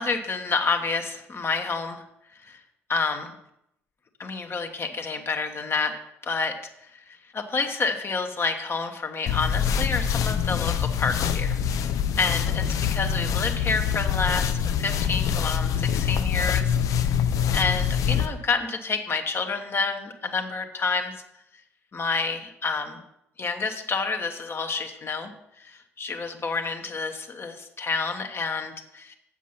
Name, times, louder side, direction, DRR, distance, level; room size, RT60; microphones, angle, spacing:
voice 1, 0.0-2.0 2.4-2.6 2.9-3.3 4.2-6.0 6.2-11.6 12.2-17.1 17.5-21.1 21.9-23.0 23.4-25.3 25.6-29.2, left 4 dB, 35° left, 5 dB, 1.2 m, -29 dB
sound 1, 9.3-18.3, left 8 dB, 55° left, 0.6 m, -25 dB
7.4 x 7.4 x 5.7 m, 0.80 s
figure-of-eight pair, 50°, 7 cm